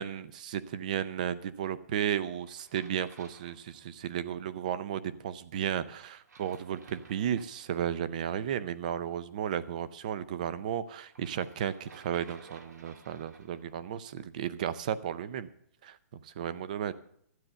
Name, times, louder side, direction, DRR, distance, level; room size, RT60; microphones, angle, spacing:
voice 1, 0.0-15.5 15.8-16.0 16.2-16.9, right 9 dB, 30° right, 15 dB, 0.5 m, -34 dB
sound 1, 2.2-4.2 6.1-8.0 11.1-13.7, right 4 dB, 85° right, 2.0 m, -55 dB
12.5 x 9.0 x 6.8 m, 0.69 s
hypercardioid pair, 175°, 9 cm